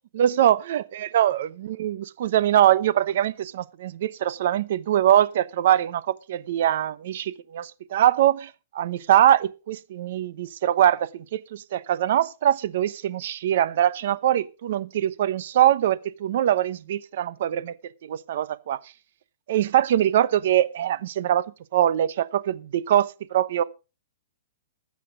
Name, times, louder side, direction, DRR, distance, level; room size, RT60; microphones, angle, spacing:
voice 1, 0.1-17.7 18.0-18.9 19.5-23.6, right 11 dB, 45° right, 0.9 m, -23 dB
14.0 x 8.5 x 5.1 m
hypercardioid pair, 175°, 0 cm